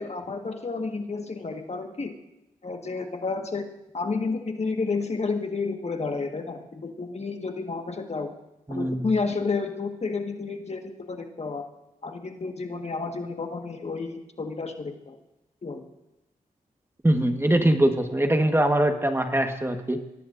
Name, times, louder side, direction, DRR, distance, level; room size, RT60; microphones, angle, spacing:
voice 1, 0.0-2.1 2.6-3.7 3.9-8.3 8.7-11.6 12.0-15.2 15.6-15.8, left 4 dB, 45° left, 4 dB, 1.6 m, -31 dB
voice 2, 8.7-9.1 17.0-20.0, right 1 dB, 15° right, 5 dB, 1.5 m, -22 dB
23.0 x 18.0 x 2.7 m, 0.91 s
cardioid pair, 55°, 15 cm